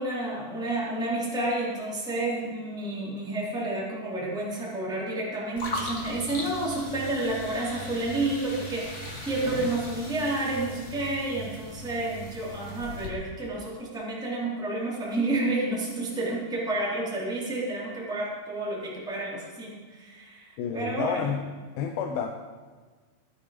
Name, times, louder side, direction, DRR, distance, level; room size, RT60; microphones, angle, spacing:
voice 1, 0.0-21.2, right 2 dB, ahead, -6 dB, 3.2 m, -30 dB
sound 1, 5.6-13.1, left 1 dB, 25° left, 1.8 m, -38 dB
voice 2, 20.6-21.4 21.8-22.3, left 7 dB, 85° left, 4 dB, 2.8 m, -29 dB
18.5 x 10.5 x 5.1 m, 1.4 s
omnidirectional pair, 4.2 m